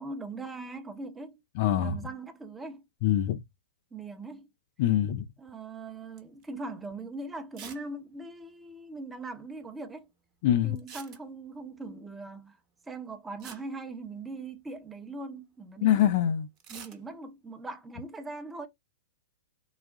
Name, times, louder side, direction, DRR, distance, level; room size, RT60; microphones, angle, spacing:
voice 1, 0.0-1.4 1.7-2.8 3.9-4.5 5.4-10.1 10.6-12.6 12.8-16.2 16.7-18.7, right 3 dB, 10° right, 0.8 m, -41 dB
voice 2, 1.6-2.0 3.0-3.4 4.8-5.2 10.4-10.8 15.8-16.5, left 11 dB, 45° left, 0.5 m, -24 dB
sound 1, 6.2-6.5 6.8-6.9 7.5-7.9 8.1-8.2 8.4-8.5 10.8-11.6 13.0-13.1 13.4-14.6 16.6-17.0, right 7 dB, 35° right, 1.1 m, -47 dB
4.0 x 2.3 x 3.5 m
figure-of-eight pair, 105°, 0 cm